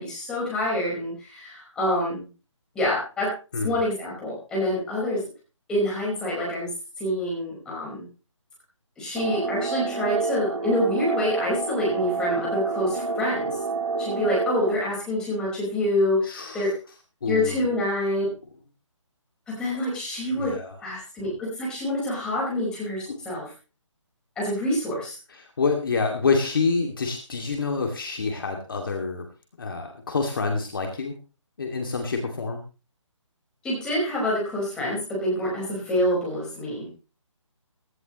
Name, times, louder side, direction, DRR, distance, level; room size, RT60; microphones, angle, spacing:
voice 1, 0.0-2.3 2.7-3.3 3.6-5.2 5.7-8.0 9.0-13.6 14.0-16.7 17.3-18.2 19.5-20.6 20.8-23.5 24.4-25.2 33.6-36.9, left 1 dB, 5° left, -4 dB, 4.9 m, -26 dB
sound 1, 9.2-14.7, right 4 dB, 75° right, 2.5 m, -28 dB
voice 2, 16.2-16.7 17.2-17.6 20.3-20.8 23.1-23.2 25.3-29.3 29.6-31.1 31.6-32.6, left 4 dB, 45° left, 2 dB, 2.5 m, -27 dB
17.5 x 15.0 x 3.1 m, 0.33 s
hypercardioid pair, 175°, 17 cm